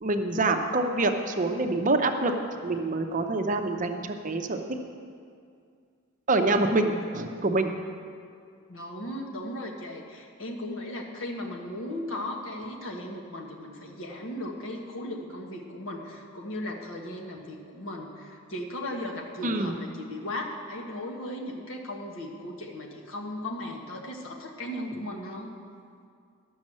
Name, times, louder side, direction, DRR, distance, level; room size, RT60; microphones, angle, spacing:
voice 1, 0.0-2.3 2.6-4.6 6.3-7.7 19.4-19.7, right 2 dB, 40° right, 5 dB, 0.7 m, -26 dB
voice 2, 8.7-25.5, left 1 dB, 75° left, 1 dB, 1.4 m, -37 dB
12.0 x 6.3 x 7.5 m, 2.3 s
head